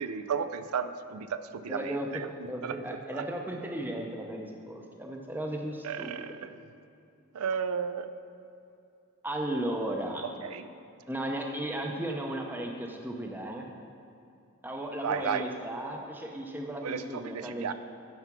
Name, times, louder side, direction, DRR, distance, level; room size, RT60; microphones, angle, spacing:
voice 1, 0.0-2.3 2.6-2.7 3.1-3.2 5.8-6.5 7.3-8.1 10.4-10.7 15.0-15.4 16.8-17.7, right 6 dB, 80° right, 11 dB, 0.4 m, -33 dB
voice 2, 1.7-2.2 2.5-6.3 9.2-10.2 11.1-13.7 14.6-17.7, right 1 dB, 10° right, 1 dB, 0.5 m, -35 dB
9.5 x 5.7 x 5.8 m, 2.6 s
head